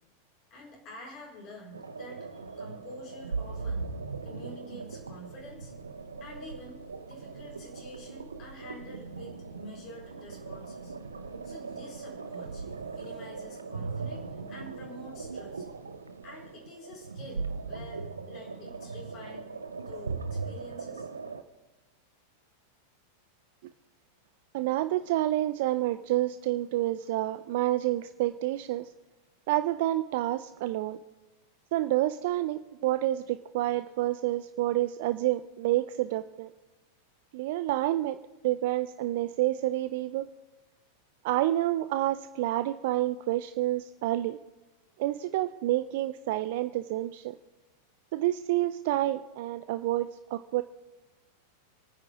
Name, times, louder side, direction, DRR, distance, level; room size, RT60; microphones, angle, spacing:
voice 1, 0.5-3.9 4.2-5.7 6.2-6.8 7.0-10.9 11.4-15.7 16.2-19.5 19.9-21.1, left 1 dB, 35° left, -3 dB, 4.5 m, -48 dB
sound 1, 1.7-21.4, right 4 dB, 75° right, 0.8 m, -39 dB
voice 2, 24.5-28.9 29.5-31.0 31.7-36.5 37.3-40.3 41.2-44.4 45.0-47.4 48.1-50.6, right 15 dB, 50° right, 12 dB, 0.4 m, -29 dB
27.5 x 9.7 x 3.5 m, 1.1 s
figure-of-eight pair, 90°, 0 cm